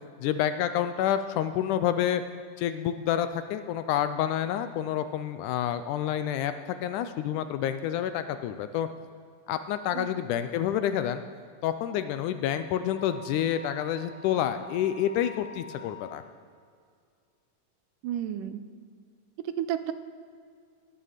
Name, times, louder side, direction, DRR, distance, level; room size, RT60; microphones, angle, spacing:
voice 1, 0.2-2.2 2.6-8.9 9.5-11.2 11.6-16.2, left 10 dB, 80° left, 10 dB, 1.9 m, -28 dB
Wind instrument woodwind instrument, 11.9-16.2, left 3 dB, 55° right, 5.8 m, -48 dB
voice 2, 18.0-18.6 19.4-19.9, right 11 dB, 80° right, 11 dB, 2.2 m, -31 dB
18.5 x 7.6 x 6.6 m, 2.2 s
omnidirectional pair, 3.9 m